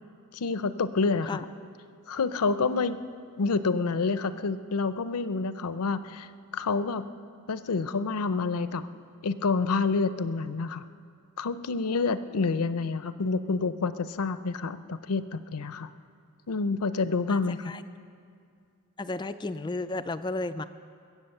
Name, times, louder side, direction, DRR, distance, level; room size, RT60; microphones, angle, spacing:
voice 1, 0.3-1.4 2.1-3.0 3.4-6.3 6.5-7.0 7.5-8.9 9.2-10.8 11.4-15.9 16.5-17.7, left 4 dB, 90° left, 13 dB, 0.6 m, -28 dB
voice 2, 17.3-17.8 19.0-20.6, left 2 dB, 20° left, 11 dB, 0.3 m, -33 dB
22.5 x 8.2 x 6.7 m, 2.3 s
head